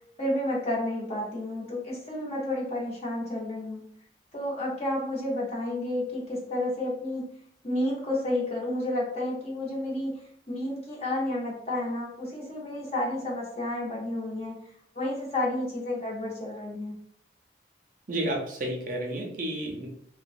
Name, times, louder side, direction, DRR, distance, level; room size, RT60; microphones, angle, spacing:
voice 1, 0.2-3.8 4.3-7.2 7.6-10.1 10.5-14.6 14.9-16.9, left 1 dB, 35° left, -4 dB, 0.8 m, -31 dB
voice 2, 18.1-19.9, right 1 dB, 45° right, 0 dB, 0.5 m, -31 dB
3.0 x 2.1 x 2.5 m, 0.69 s
head